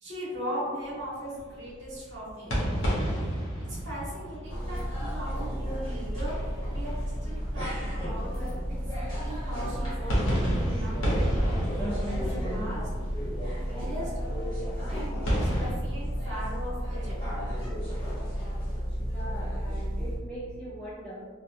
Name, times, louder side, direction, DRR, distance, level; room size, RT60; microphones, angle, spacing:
voice 1, 0.0-2.6 3.7-6.3 6.7-11.3 12.1-12.9 13.6-14.1 14.9-17.2, equal, 70° right, -9 dB, 1.0 m, -38 dB
sound 1, 0.8-9.2 9.7-15.7, equal, 70° left, 0.7 m, -32 dB
sound 2, 4.5-20.2, equal, 20° left, 0.9 m, -32 dB
voice 2, 19.0-21.3, right 1 dB, 5° left, -9 dB, 0.3 m, -41 dB
2.7 x 2.1 x 2.5 m, 1.5 s
head